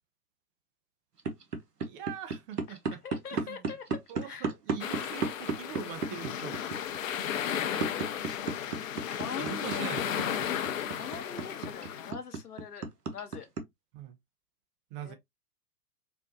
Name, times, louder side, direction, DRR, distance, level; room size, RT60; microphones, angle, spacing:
sound 1, 1.2-13.6, right 4 dB, 85° right, 0.9 m, -33 dB
voice 1, 1.8-3.0 3.3-3.7 4.1-6.6 9.3-10.4 11.0-11.1 13.9-14.2 14.9-15.1, right 8 dB, 35° right, 0.8 m, -42 dB
voice 2, 3.0-3.9 4.2-4.5 9.1-9.9 10.9-13.5 15.0-15.1, left 7 dB, 75° left, 1.0 m, -42 dB
sound 2, 4.8-12.1, left 9 dB, 55° left, 0.7 m, -34 dB
4.4 x 2.3 x 2.6 m
figure-of-eight pair, 105°, 46 cm